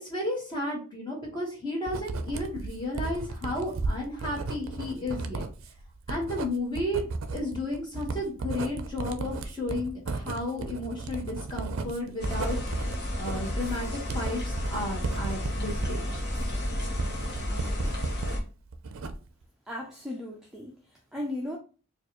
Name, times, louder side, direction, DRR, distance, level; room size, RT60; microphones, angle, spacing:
voice 1, 0.0-5.4 6.1-7.1 7.3-12.6 13.2-13.9 14.1-16.2, left 1 dB, 20° left, 1.3 m, -33 dB
Writing, 1.9-18.4 18.7-19.4, right 3 dB, 60° right, 0.4 m, -35 dB
sound 1, 12.2-18.4, left 1 dB, 45° left, 1.0 m, -32 dB
voice 2, 19.7-21.6, left 1 dB, ahead, 0.4 m, -36 dB
4.4 x 2.4 x 2.9 m
head